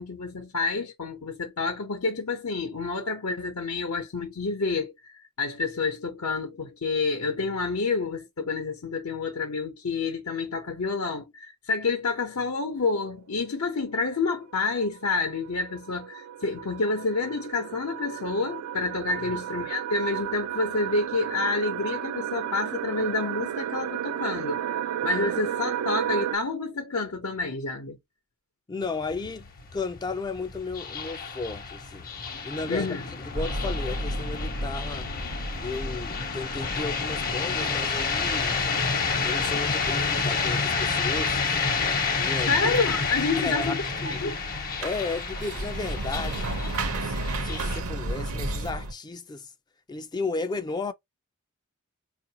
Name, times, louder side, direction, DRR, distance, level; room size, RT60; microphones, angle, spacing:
voice 1, 0.0-24.6 25.0-28.0 32.7-33.0 42.5-44.4, left 3 dB, 75° left, 0.8 m, -29 dB
sound 1, 12.9-13.0 14.5-26.4, right 10 dB, 85° right, 0.3 m, -33 dB
voice 2, 28.7-32.1 32.4-35.1 35.6-38.6 39.2-42.7 43.4-43.7 44.0-44.2 44.8-49.5 49.9-50.9, left 3 dB, 20° left, 0.3 m, -34 dB
sound 2, 28.8-47.8, left 5 dB, 40° left, 0.8 m, -29 dB
sound 3, 33.4-48.9, right 1 dB, 70° right, 0.7 m, -35 dB
4.5 x 2.5 x 2.8 m
head